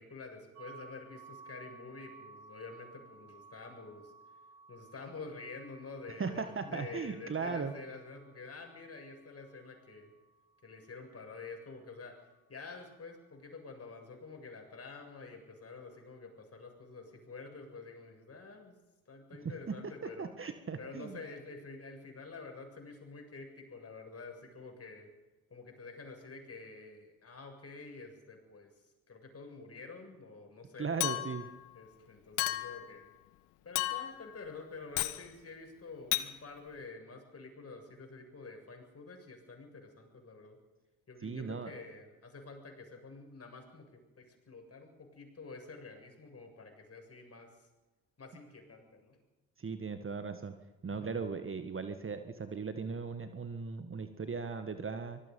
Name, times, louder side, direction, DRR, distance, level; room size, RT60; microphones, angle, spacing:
voice 1, 0.0-4.1 4.7-10.1 10.6-12.2 12.5-18.8 19.1-20.3 20.8-25.1 25.5-28.7 29.1-31.0 31.7-33.1 33.6-40.6 41.1-47.7 48.2-49.2 50.9-51.1, left 3 dB, 35° left, 3 dB, 7.4 m, -48 dB
sound 1, 0.6-12.3, right 4 dB, 80° right, 2.7 m, -58 dB
voice 2, 6.2-7.7 19.4-19.8 20.0-21.2 30.8-31.5 41.2-41.7 49.6-50.5 50.8-55.2, right 5 dB, 30° right, 8 dB, 1.7 m, -38 dB
Chink clink, 31.0-31.5 32.4-32.8 33.8-34.3 35.0-35.2 36.1-36.3, left 18 dB, 70° left, 1.2 m, -33 dB
25.0 x 19.5 x 5.5 m, 1.1 s
hypercardioid pair, 55°, 43 cm